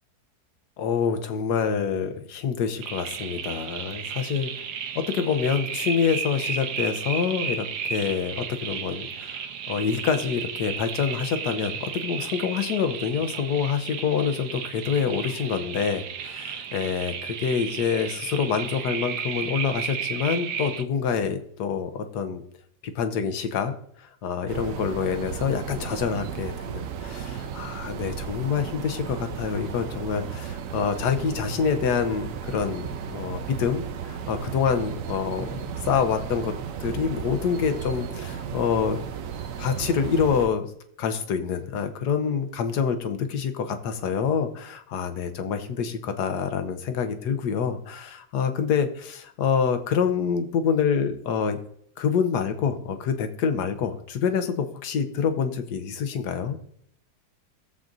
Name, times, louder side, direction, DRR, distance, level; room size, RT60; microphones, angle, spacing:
voice 1, 0.8-4.5 4.9-22.4 22.9-23.7 24.0-36.5 36.8-39.0 39.6-40.7 41.0-51.6 52.0-56.6, left 6 dB, 80° left, 8 dB, 1.4 m, -26 dB
sound 1, 2.8-20.8, right 7 dB, 85° right, 1.3 m, -33 dB
sound 2, 24.5-40.5, right 8 dB, 65° right, 0.9 m, -35 dB
15.0 x 7.4 x 2.6 m, 0.67 s
omnidirectional pair, 1.7 m